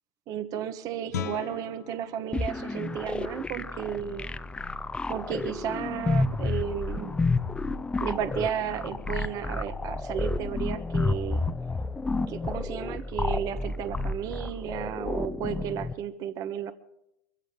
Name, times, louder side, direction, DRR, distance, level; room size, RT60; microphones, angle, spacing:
voice 1, 0.3-4.3 5.1-7.2 8.0-11.4 12.3-16.7, right 9 dB, 45° right, 10 dB, 1.2 m, -33 dB
Guitar, 1.1-6.6, left 11 dB, 80° left, 1.1 m, -43 dB
sound 1, 2.3-15.9, left 3 dB, 10° left, 0.6 m, -30 dB
23.5 x 15.5 x 3.8 m, 0.80 s
hypercardioid pair, 100°, 9 cm